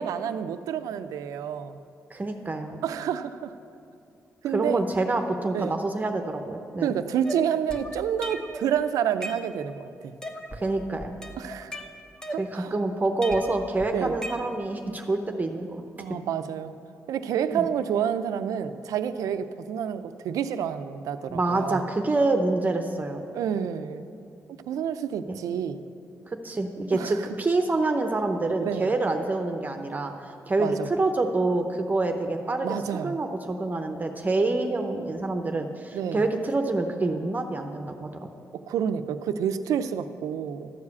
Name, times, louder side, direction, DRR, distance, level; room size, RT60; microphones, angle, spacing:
voice 1, 0.0-1.8 2.8-3.5 4.4-4.8 5.5-5.8 6.8-10.1 11.4-11.8 12.3-12.7 13.9-14.2 16.0-16.8 17.1-21.8 23.3-24.1 24.7-25.8 26.9-27.2 28.6-28.9 30.6-30.9 32.6-33.1 35.9-36.2 38.5-40.7, right 8 dB, 90° right, 11 dB, 0.4 m, -29 dB
voice 2, 2.1-2.8 4.4-6.9 10.5-11.1 12.4-15.8 17.5-17.6 21.3-23.2 25.3-25.4 26.3-32.8 33.0-38.3, right 2 dB, 30° right, 5 dB, 0.8 m, -27 dB
sound 1, 7.3-8.7 9.0-9.8 10.2-10.7 11.0-12.8 13.2-14.8, equal, 10° left, 0.9 m, -38 dB
12.5 x 4.9 x 8.3 m, 2.6 s
cardioid pair, 75°, 6 cm